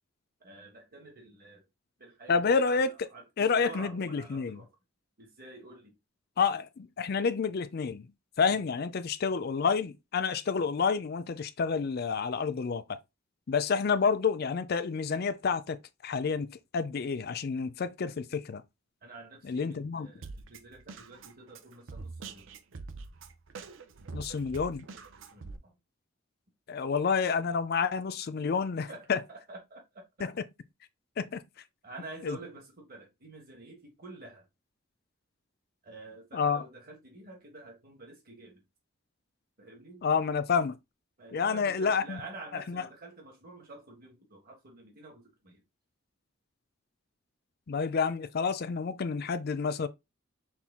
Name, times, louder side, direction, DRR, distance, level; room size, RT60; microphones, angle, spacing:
voice 1, 0.4-1.7 2.0-4.7 5.2-6.0 8.4-8.6 19.0-22.5 25.3-25.8 28.9-30.0 31.8-34.5 35.8-38.6 39.6-40.0 41.2-45.6, right 2 dB, 45° right, 1.3 m, -48 dB
voice 2, 2.3-2.9 3.4-4.6 6.4-8.1 8.4-13.0 13.5-15.8 16.0-18.6 19.4-20.1 24.1-24.9 26.7-29.2 30.2-30.3 31.2-31.4 32.2-32.4 36.3-36.6 40.0-40.8 41.3-42.2 42.5-42.8 47.7-49.9, left 5 dB, 50° left, 0.4 m, -29 dB
Drum kit, 20.2-25.6, right 4 dB, 65° right, 0.6 m, -44 dB
5.9 x 2.2 x 3.6 m
head